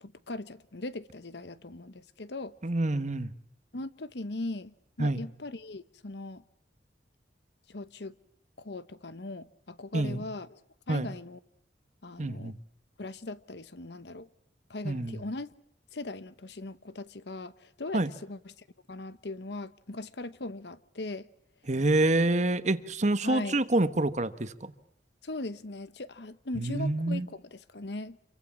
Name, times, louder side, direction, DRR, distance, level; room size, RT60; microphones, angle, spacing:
voice 1, 0.0-2.5 3.7-6.4 7.7-8.1 8.6-10.6 10.9-11.4 12.0-12.5 13.0-14.3 14.7-15.5 15.9-21.3 23.2-23.6 25.2-28.2, left 2 dB, 65° left, 1.0 m, -39 dB
voice 2, 2.6-3.3 5.0-5.2 9.9-10.2 10.9-11.1 12.2-12.6 14.8-15.2 17.9-18.1 21.7-24.7 26.5-27.3, right 2 dB, 40° right, 1.3 m, -27 dB
27.5 x 23.5 x 7.3 m
head